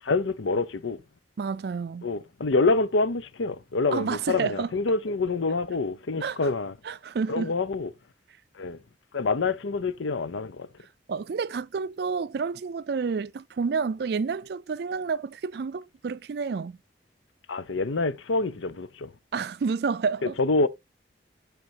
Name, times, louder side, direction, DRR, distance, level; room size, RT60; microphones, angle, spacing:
voice 1, 0.0-1.0 2.0-6.7 7.3-7.9 8.6-8.8 9.1-10.7 17.5-19.1 20.2-20.7, left 3 dB, 85° left, 0.7 m, -26 dB
voice 2, 1.4-2.1 3.9-4.7 6.2-6.4 6.9-7.5 11.1-16.8 19.3-20.3, right 5 dB, 55° right, 0.4 m, -29 dB
11.5 x 4.3 x 2.8 m
head